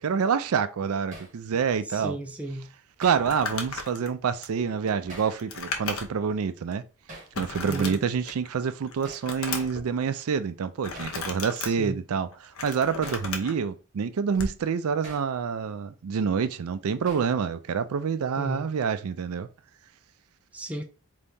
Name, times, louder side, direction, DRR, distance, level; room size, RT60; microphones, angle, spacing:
voice 1, 0.0-2.2 3.0-6.8 7.4-19.5, right 6 dB, 80° right, 0.4 m, -27 dB
Hammer, 1.1-1.4 3.0-3.3 5.1-5.4 7.1-7.4 9.0-9.3 11.0-11.2 13.0-13.3 15.0-15.3 17.1-17.4, right 1 dB, 35° right, 1.5 m, -44 dB
voice 2, 1.8-2.7 7.6-8.0 11.6-12.0 18.4-18.7 20.5-20.8, right 1 dB, 5° right, 0.5 m, -34 dB
Crumpling crinkling, 3.1-6.3 6.7-6.8 7.3-8.5 8.9-9.8 10.8-11.7 12.3-13.5 14.3-14.6, left 4 dB, 70° left, 0.8 m, -35 dB
3.9 x 2.8 x 3.5 m
head